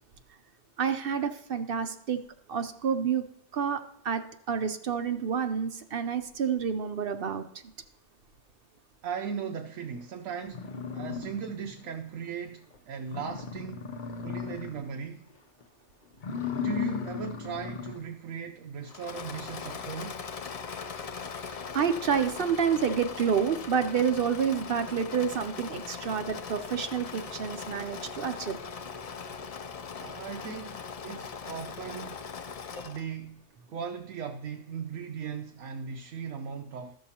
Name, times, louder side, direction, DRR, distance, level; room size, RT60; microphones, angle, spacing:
voice 1, 0.8-2.2 2.5-3.2 3.5-4.2 4.5-7.4 21.5-28.6, right 7 dB, 55° right, 0.7 m, -29 dB
voice 2, 9.0-13.9 14.2-15.3 16.5-20.2 27.2-27.3 30.0-32.2 32.8-37.0, right 6 dB, 80° right, 1.1 m, -38 dB
sound 1, 10.0-10.1 10.5-11.9 12.3-12.4 12.7-12.8 13.0-15.0 15.3-15.6 16.1-18.1, left 7 dB, 50° left, 0.7 m, -36 dB
Engine / Mechanisms, 18.8-33.1, left 5 dB, 70° left, 0.3 m, -40 dB
14.0 x 6.5 x 2.8 m
omnidirectional pair, 1.4 m